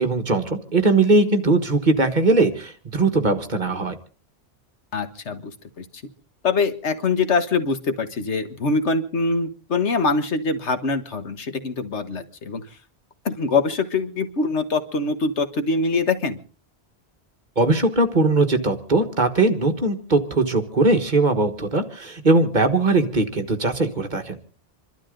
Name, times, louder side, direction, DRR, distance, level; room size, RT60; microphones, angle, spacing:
voice 1, 0.0-3.9 17.6-24.5, right 2 dB, 45° right, 6 dB, 1.7 m, -20 dB
voice 2, 4.9-5.4 5.8-5.9 6.4-12.6 13.2-16.4, left 4 dB, 85° left, 9 dB, 1.6 m, -23 dB
27.5 x 12.0 x 3.9 m, 0.39 s
omnidirectional pair, 1.1 m